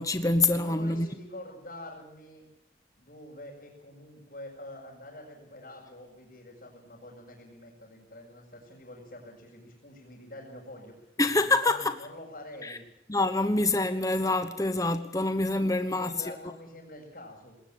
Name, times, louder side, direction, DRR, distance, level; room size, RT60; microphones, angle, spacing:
voice 1, 0.0-1.1 11.2-11.9 12.6-12.8 13.1-16.3, left 2 dB, 20° left, 1.1 m, -26 dB
voice 2, 0.6-2.5 3.0-11.1 11.4-12.9 15.5-17.6, left 1 dB, 50° left, 6.5 m, -46 dB
20.5 x 19.0 x 8.7 m
head